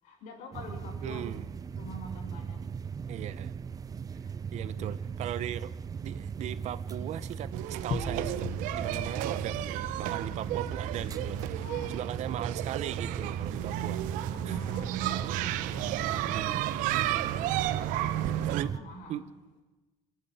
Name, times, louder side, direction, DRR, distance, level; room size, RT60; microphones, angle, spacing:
voice 1, 0.0-1.4 1.8-2.7 4.2-4.4 4.7-5.0 11.5-12.1 14.3-17.1 17.5-19.3, left 1 dB, 70° left, 6.7 m, -47 dB
sound 1, 0.5-18.8, right 6 dB, 30° right, 0.6 m, -38 dB
voice 2, 1.0-1.5 3.1-3.5 4.5-5.7 6.0-14.1 14.5-14.7 16.2-16.6 18.2-18.7 19.1-19.2, right 12 dB, 60° right, 1.1 m, -38 dB
sound 2, 7.5-18.6, right 14 dB, 90° right, 1.0 m, -33 dB
sound 3, 7.9-17.1, left 9 dB, 50° left, 0.9 m, -46 dB
27.5 x 11.5 x 9.5 m
cardioid pair, 135°, 13 cm